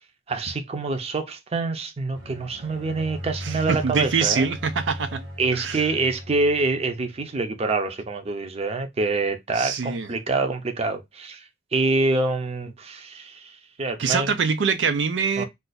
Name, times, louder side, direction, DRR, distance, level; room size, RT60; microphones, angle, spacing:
voice 1, 0.3-4.5 5.4-11.4 11.7-13.5 13.8-14.4 15.4-15.5, right 3 dB, 35° right, 0.6 m, -26 dB
sound 1, 2.1-7.2, equal, 70° right, 1.2 m, -38 dB
voice 2, 3.4-5.2 5.5-5.8 9.6-10.1 14.0-15.5, right 5 dB, 85° right, 0.5 m, -24 dB
2.5 x 2.4 x 3.9 m
head